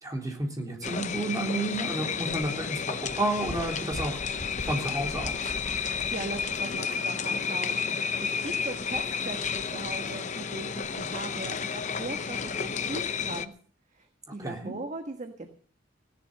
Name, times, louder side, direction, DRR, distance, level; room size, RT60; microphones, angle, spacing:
voice 1, 0.0-4.1 4.6-5.5 14.4-14.7, right 2 dB, 15° right, 2 dB, 3.4 m, -31 dB
sound 1, 0.8-13.5, left 6 dB, 35° left, 0.8 m, -31 dB
voice 2, 5.9-13.5 13.9-15.5, right 2 dB, 35° right, 6 dB, 1.4 m, -39 dB
16.5 x 11.0 x 6.7 m, 0.44 s
head